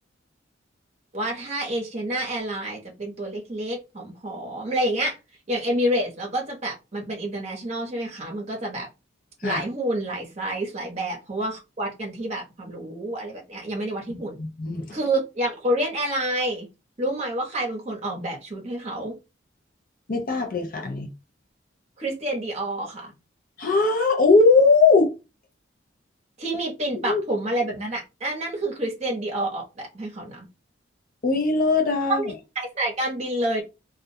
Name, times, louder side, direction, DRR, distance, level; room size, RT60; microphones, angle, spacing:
voice 1, 1.1-5.2 5.5-8.9 9.4-14.4 14.9-16.7 17.0-19.2 22.0-23.1 26.4-30.5 32.1-33.6, right 1 dB, 35° right, 0.8 m, -28 dB
voice 2, 14.1-15.0 20.1-21.1 23.6-25.1 27.0-27.2 31.2-32.2, left 3 dB, 45° left, 0.5 m, -20 dB
2.3 x 2.1 x 2.7 m
head